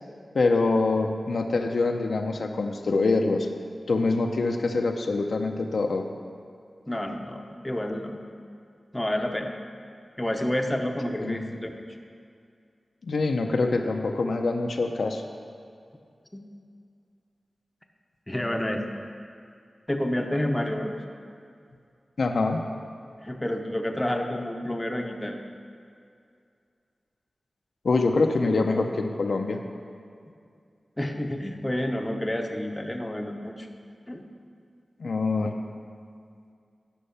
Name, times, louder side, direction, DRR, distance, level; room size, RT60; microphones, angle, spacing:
voice 1, 0.3-3.5 3.9-6.1 11.1-11.5 13.0-15.2 22.2-22.6 27.8-29.6 35.0-35.6, left 3 dB, 75° left, 4 dB, 0.6 m, -25 dB
voice 2, 6.9-8.2 8.9-9.5 10.2-11.8 16.3-16.4 18.3-18.8 19.9-20.9 23.2-25.4 31.0-33.7 34.1-34.2, left 1 dB, 15° left, 3 dB, 0.6 m, -29 dB
10.0 x 5.5 x 5.6 m, 2.4 s
wide cardioid pair, 110°, 0 cm